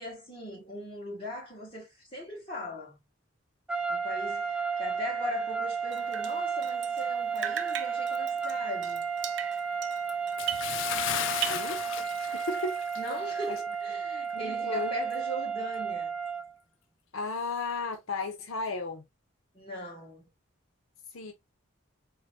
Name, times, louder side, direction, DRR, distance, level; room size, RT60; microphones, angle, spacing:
voice 1, 0.0-2.9 3.9-9.1 13.0-16.1 19.5-20.3, left 1 dB, 25° left, 2.0 m, -39 dB
sound 1, 3.7-16.5, right 6 dB, 5° right, 0.3 m, -33 dB
Drip, 5.9-7.1 7.3-11.1 11.3-12.4, right 10 dB, 60° right, 0.5 m, -38 dB
Bathtub (filling or washing) / Splash splatter, 10.4-13.2 13.6-13.7 14.3-14.4, left 10 dB, 70° left, 0.3 m, -35 dB
voice 2, 11.5-11.8 12.2-12.8 13.5-13.6 14.3-14.9 17.1-19.0 21.1-21.3, left 3 dB, 85° left, 0.8 m, -34 dB
3.9 x 3.1 x 2.8 m
head